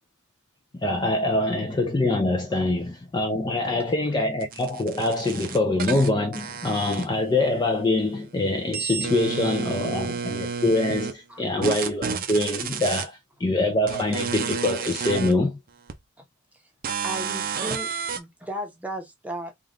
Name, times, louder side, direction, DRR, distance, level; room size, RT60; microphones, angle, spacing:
voice 1, 0.7-15.6, left 2 dB, 20° left, 0.4 m, -24 dB
voice 2, 3.5-3.8 9.2-9.6 11.3-11.5 16.5-16.6 17.0-17.9 18.1-19.5, right 1 dB, 5° right, 0.9 m, -36 dB
sound 1, 4.4-7.5 7.8-11.1 11.6-13.1 13.9-15.3 15.9-16.0 16.8-18.2, right 6 dB, 40° right, 0.5 m, -31 dB
3.6 x 2.4 x 3.7 m
head